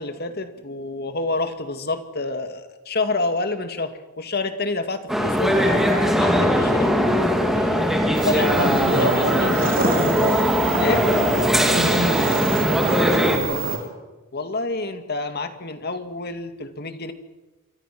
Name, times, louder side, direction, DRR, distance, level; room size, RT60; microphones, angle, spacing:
voice 1, 0.0-6.9 7.6-9.7 10.8-11.1 14.3-17.1, left 3 dB, 50° left, 8 dB, 2.2 m, -28 dB
sound 1, 5.1-13.4, equal, ahead, 3.0 m, -20 dB
sound 2, 8.1-13.8, right 4 dB, 45° right, 4.1 m, -27 dB
voice 2, 8.2-10.4 10.9-13.9, right 1 dB, 75° right, 2 dB, 7.3 m, -28 dB
28.0 x 24.0 x 6.1 m, 1.1 s
head